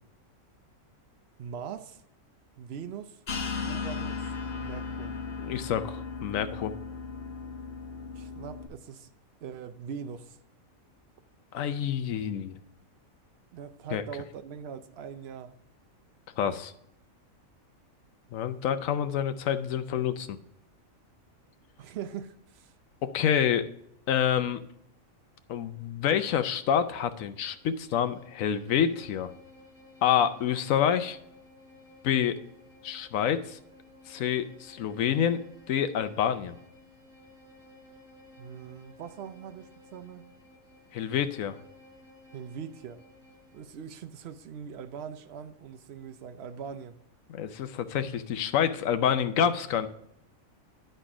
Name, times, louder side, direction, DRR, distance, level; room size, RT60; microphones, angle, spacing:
voice 1, 1.4-2.0 2.6-3.2 3.7-4.3 4.6-5.1 8.1-9.1 9.4-10.4 13.5-15.6 21.8-22.7 38.4-40.3 42.3-43.0 43.5-47.0, right 7 dB, 60° right, 0.8 m, -41 dB
sound 1, 3.3-8.7, left 5 dB, 50° left, 1.1 m, -36 dB
voice 2, 5.4-6.7 11.5-12.6 13.9-14.0 16.4-16.7 18.3-20.4 23.0-23.7 24.1-24.6 25.5-29.3 30.0-31.2 32.0-32.4 32.8-33.6 34.1-35.4 35.7-36.6 40.9-41.6 47.3-49.9, left 9 dB, 75° left, 1.0 m, -27 dB
Bowed string instrument, 27.4-43.8, left 2 dB, ahead, 2.5 m, -55 dB
10.5 x 4.4 x 4.9 m
omnidirectional pair, 1.4 m